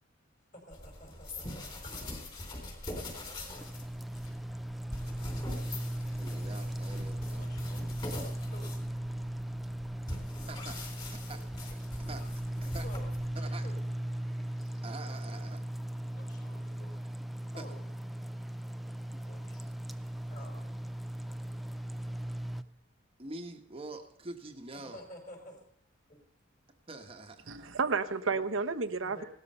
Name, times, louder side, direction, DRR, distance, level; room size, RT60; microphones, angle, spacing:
voice 1, 0.5-2.6 5.9-6.0 7.3-9.0 11.3-11.4 11.7-12.3 12.6-13.8 14.2-14.8 16.0-17.1 17.4-17.8 19.2-19.7 19.9-20.9 22.5-22.6 24.8-25.6 26.1-26.2 29.0-29.3, left 1 dB, 40° left, 5.3 m, -52 dB
sound 1, 0.7-13.5, left 1 dB, 25° left, 3.7 m, -43 dB
sound 2, 3.6-22.6, right 1 dB, ahead, 0.6 m, -38 dB
voice 2, 6.2-7.4 10.5-10.8 11.3-11.4 12.1-12.2 12.6-12.8 13.3-13.7 14.8-15.6 17.6-17.7 23.2-25.0 26.9-27.7, right 2 dB, 30° right, 1.2 m, -45 dB
voice 3, 27.5-29.2, right 4 dB, 80° right, 1.0 m, -31 dB
17.5 x 13.0 x 5.5 m
head